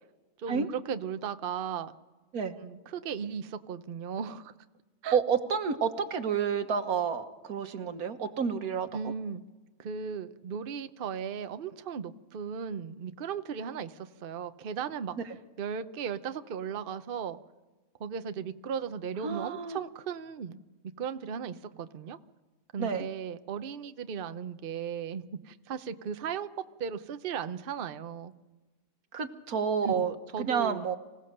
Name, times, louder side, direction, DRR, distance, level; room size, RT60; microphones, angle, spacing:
voice 1, 0.4-1.9 2.6-4.5 5.0-5.2 8.9-9.4 9.8-15.2 15.6-17.4 18.0-20.6 21.0-22.2 22.7-26.5 26.8-28.3 29.8-30.0 30.3-30.8, right 7 dB, 45° right, 10 dB, 0.8 m, -36 dB
voice 2, 5.1-9.1 19.2-19.8 22.8-23.1 29.1-31.0, right 6 dB, 85° right, 8 dB, 1.7 m, -30 dB
25.5 x 17.0 x 6.7 m, 1.2 s
omnidirectional pair, 1.5 m